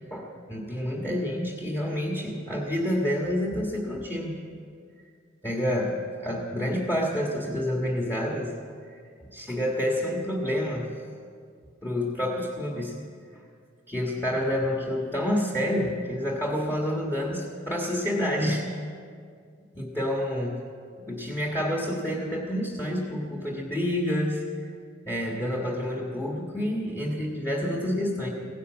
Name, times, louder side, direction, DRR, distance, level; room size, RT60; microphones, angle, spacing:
voice 1, 0.1-4.4 5.4-8.5 9.2-10.9 11.8-12.9 13.9-18.7 19.7-20.6 21.1-24.4 25.0-28.3, equal, 15° left, -1 dB, 1.6 m, -28 dB
16.5 x 11.5 x 7.4 m, 2.2 s
head